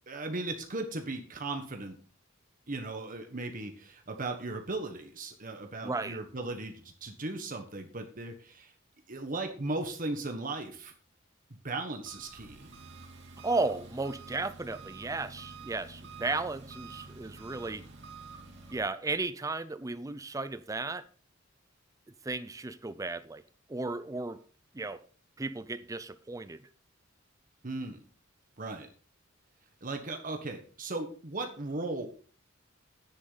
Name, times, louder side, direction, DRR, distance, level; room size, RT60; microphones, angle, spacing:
voice 1, 0.1-2.0 2.7-8.7 9.1-10.9 11.6-12.7 27.6-28.0 28.6-28.9 29.8-32.1, right 2 dB, 40° right, 1.3 m, -37 dB
voice 2, 5.8-6.2 13.4-17.8 18.7-21.0 22.2-23.4 23.7-24.4 24.7-25.0 25.4-26.7, right 3 dB, 15° right, 0.5 m, -34 dB
Engine, 12.0-18.8, right 4 dB, 60° right, 2.9 m, -48 dB
11.0 x 10.0 x 4.0 m
head